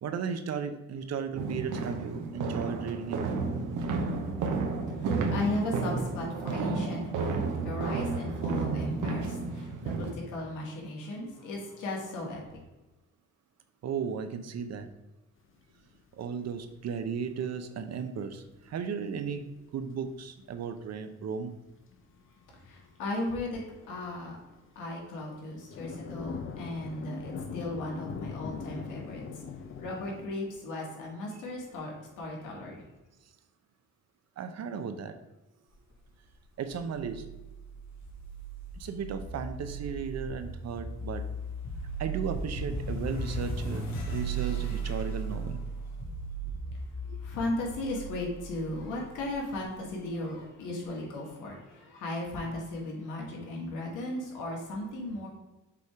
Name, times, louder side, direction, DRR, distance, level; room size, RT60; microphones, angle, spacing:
voice 1, 0.0-3.4 13.8-14.9 16.2-19.5 19.7-21.5 34.4-35.2 36.6-37.2 38.8-41.2 42.0-45.6 47.1-47.2, right 6 dB, 60° right, 8 dB, 0.8 m, -35 dB
sound 1, 1.4-10.1, right 4 dB, 80° right, 1.0 m, -32 dB
voice 2, 5.0-12.4 22.5-24.4 24.7-32.8 47.2-55.3, left 2 dB, 90° left, -2 dB, 2.0 m, -36 dB
sound 2, 15.5-15.6 15.8-23.1 23.4-23.6 24.0-30.3, left 5 dB, 45° left, 0.7 m, -42 dB
sound 3, 36.8-49.9, right 3 dB, 65° left, 1.7 m, -37 dB
6.9 x 3.6 x 4.7 m, 1.1 s
cardioid pair, 90°, 30 cm